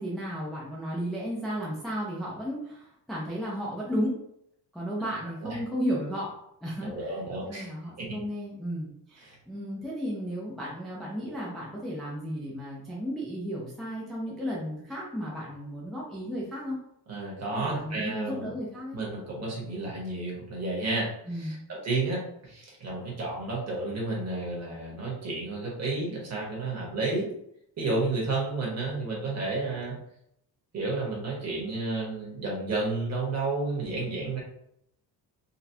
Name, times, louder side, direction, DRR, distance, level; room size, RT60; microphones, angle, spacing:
voice 1, 0.0-4.2 4.7-6.3 6.6-7.2 7.4-16.8 17.5-19.0 21.3-21.6, equal, ahead, -6 dB, 0.4 m, -34 dB
voice 2, 6.8-7.7 8.0-8.2 9.2-9.3 17.1-18.5 18.9-27.3 27.8-30.0 30.7-34.4, right 3 dB, 40° right, -4 dB, 1.3 m, -31 dB
4.0 x 2.3 x 2.7 m, 0.74 s
cardioid pair, 170°, 40 cm